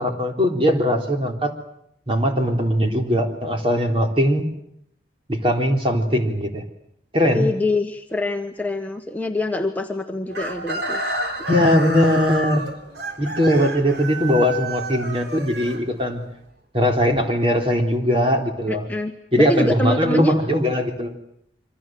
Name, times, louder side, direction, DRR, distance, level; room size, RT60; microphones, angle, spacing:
voice 1, 0.0-1.5 2.1-4.4 5.3-6.6 7.1-7.5 11.5-12.6 13.2-16.2 16.7-18.9 19.3-21.1, equal, 30° right, 3 dB, 3.7 m, -20 dB
voice 2, 7.3-11.0 18.7-20.3, left 2 dB, 10° left, 3 dB, 1.2 m, -25 dB
Chicken rooster, 10.3-16.3, right 2 dB, 65° right, 3.7 m, -30 dB
27.5 x 25.0 x 7.7 m, 0.74 s
head